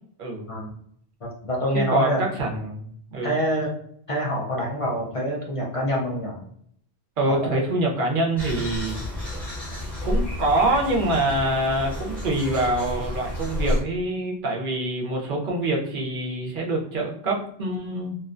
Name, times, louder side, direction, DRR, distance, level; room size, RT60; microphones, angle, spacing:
voice 1, 0.2-0.5 1.7-3.3 7.2-9.0 10.0-18.2, right 1 dB, 55° right, -1 dB, 0.7 m, -25 dB
voice 2, 1.2-2.2 3.2-3.7 4.1-6.4 7.3-7.6, equal, 50° left, -3 dB, 0.4 m, -26 dB
sound 1, 8.4-13.8, left 1 dB, ahead, 0.7 m, -30 dB
2.7 x 2.1 x 2.4 m, 0.67 s
omnidirectional pair, 1.2 m